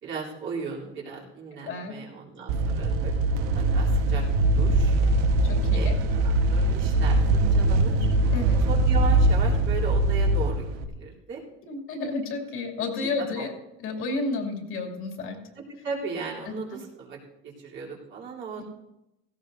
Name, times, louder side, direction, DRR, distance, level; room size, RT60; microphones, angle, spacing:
voice 1, 0.0-4.2 4.6-4.9 5.7-5.9 6.2-8.1 8.7-10.7 11.0-11.4 13.2-13.4 15.6-17.2 17.4-18.6, right 5 dB, 40° right, -4 dB, 3.4 m, -36 dB
sound 1, 2.5-10.8, right 2 dB, 80° right, 1.3 m, -22 dB
voice 2, 5.4-6.0 8.3-8.6 11.7-13.5 13.8-15.4 16.4-16.6, left 3 dB, 45° left, 0 dB, 2.7 m, -31 dB
17.5 x 16.5 x 2.7 m, 0.90 s
cardioid pair, 160°, 30 cm